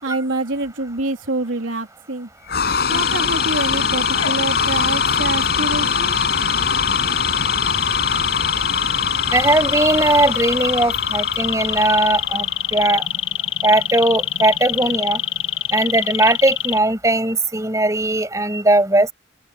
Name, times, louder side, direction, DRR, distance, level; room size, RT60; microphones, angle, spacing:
voice 1, 0.0-2.3 2.9-6.2, right 2 dB, 80° right, 3.4 m, -26 dB
sound 1, 2.5-12.8, left 5 dB, 50° left, 7.2 m, -23 dB
sound 2, 2.9-16.8, left 11 dB, 85° left, 1.5 m, -25 dB
voice 2, 9.3-13.1 13.6-15.2 15.7-19.1, right 2 dB, 15° right, 7.0 m, -18 dB
open air
head